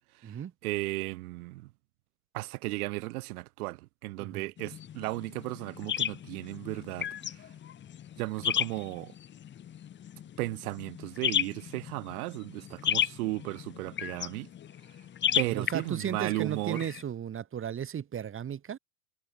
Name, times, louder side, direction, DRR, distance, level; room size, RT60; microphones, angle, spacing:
voice 1, 0.6-1.7 2.3-7.1 8.2-9.1 10.4-14.5 15.3-16.9, right 20 dB, 60° right, 3.1 m, -35 dB
sound 1, 4.6-17.0, left 10 dB, 25° left, 1.3 m, -34 dB
voice 2, 15.3-18.8, right 9 dB, 25° right, 4.5 m, -35 dB
hypercardioid pair, 110°, 48 cm